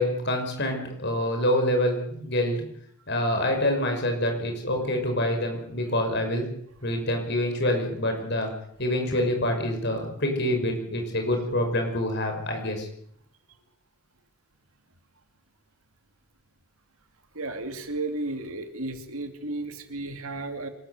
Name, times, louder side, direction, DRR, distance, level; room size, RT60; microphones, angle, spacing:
voice 1, 0.0-2.6 3.1-6.5 6.8-8.5 8.8-12.9, left 1 dB, 50° left, 4 dB, 6.0 m, -26 dB
voice 2, 17.3-20.7, right 2 dB, 75° right, 7 dB, 2.6 m, -33 dB
26.0 x 13.5 x 8.0 m, 0.66 s
head